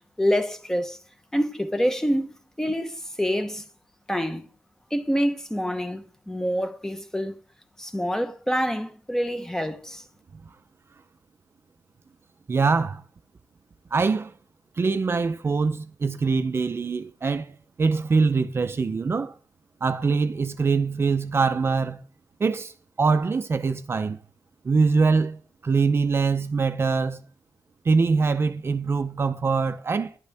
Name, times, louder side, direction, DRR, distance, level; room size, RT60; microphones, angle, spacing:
voice 1, 0.2-1.0 1.3-3.6 4.1-4.5 4.9-7.4 7.8-10.0, equal, 5° left, 0.9 m, -26 dB
voice 2, 12.5-13.0 13.9-14.3 14.8-19.3 19.8-22.0 22.4-24.2 24.6-27.2 27.8-30.2, right 4 dB, 35° right, 0.6 m, -23 dB
11.5 x 11.5 x 3.5 m
wide cardioid pair, 165°, 7 cm